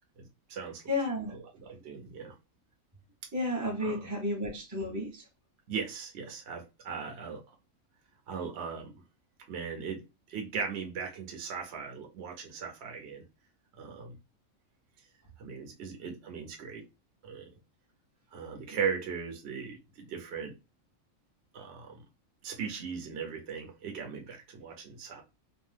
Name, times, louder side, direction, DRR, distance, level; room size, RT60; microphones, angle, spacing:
voice 1, 0.2-0.8 1.6-2.3 3.8-4.1 5.7-7.4 8.3-8.9 9.5-13.2 13.8-14.2 15.4-16.8 17.2-17.5 18.3-20.5 21.5-22.0 22.4-25.2, right 6 dB, 55° right, 0.9 m, -38 dB
voice 2, 0.9-1.4 3.3-5.2, left 1 dB, 20° right, 0.6 m, -32 dB
2.6 x 2.2 x 3.3 m
omnidirectional pair, 1.4 m